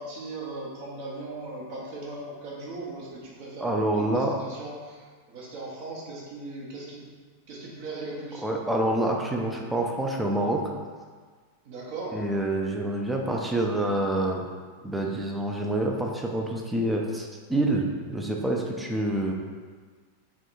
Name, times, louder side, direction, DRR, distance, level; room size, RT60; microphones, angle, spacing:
voice 1, 0.0-7.0 7.5-8.5 11.6-12.2, right 2 dB, 45° right, -4 dB, 0.9 m, -38 dB
voice 2, 3.6-4.4 8.4-10.6 12.1-14.4 14.8-19.3, right 1 dB, 5° right, 0 dB, 0.5 m, -27 dB
3.4 x 2.5 x 4.3 m, 1.6 s
figure-of-eight pair, 90°, 0 cm